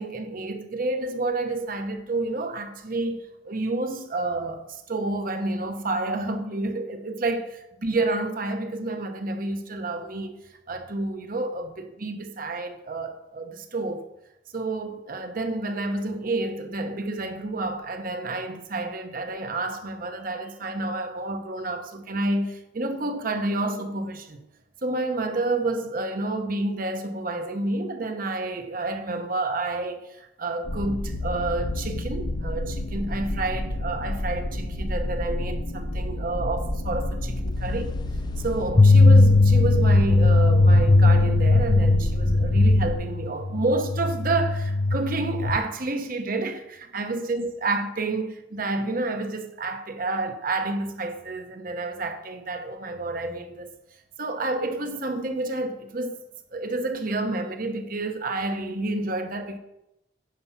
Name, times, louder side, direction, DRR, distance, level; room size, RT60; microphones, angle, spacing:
voice 1, 0.0-10.4 10.7-14.1 14.5-24.4 24.8-38.0 38.4-53.7 54.2-56.2 56.5-59.6, right 2 dB, 50° right, 0.9 m, -29 dB
sound 1, 30.6-43.0, left 1 dB, 70° left, 0.9 m, -30 dB
sound 2, 38.7-45.6, left 2 dB, 25° left, 0.4 m, -18 dB
9.4 x 5.7 x 5.8 m
head